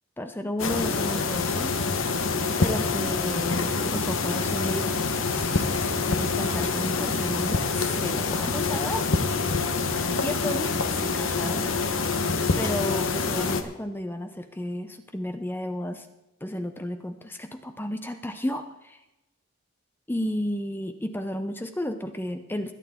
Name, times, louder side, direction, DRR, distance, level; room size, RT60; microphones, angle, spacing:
voice 1, 0.2-1.7 2.6-9.1 10.2-11.7 12.6-16.1 16.4-19.0 20.1-22.7, left 1 dB, 10° left, 8 dB, 0.6 m, -33 dB
sound 1, 0.6-13.6, left 4 dB, 80° left, 1.0 m, -26 dB
21.5 x 9.2 x 3.7 m, 0.97 s
head